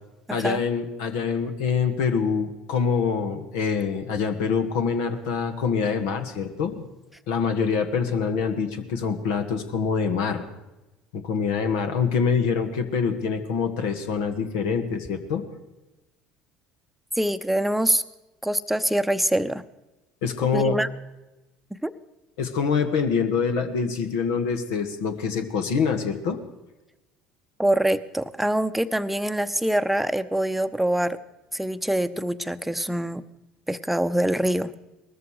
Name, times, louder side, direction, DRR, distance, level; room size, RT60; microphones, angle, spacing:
voice 1, 0.3-6.9 7.3-10.4 11.1-15.4 20.2-20.8 22.4-26.4, left 6 dB, 75° left, 7 dB, 1.6 m, -25 dB
voice 2, 17.2-18.0 18.4-19.6 20.5-20.9 21.8-21.9 27.6-31.2 31.5-33.2 33.7-34.7, right 1 dB, 5° right, 11 dB, 0.9 m, -24 dB
19.5 x 13.5 x 4.9 m, 1.0 s
hypercardioid pair, 70°, 3 cm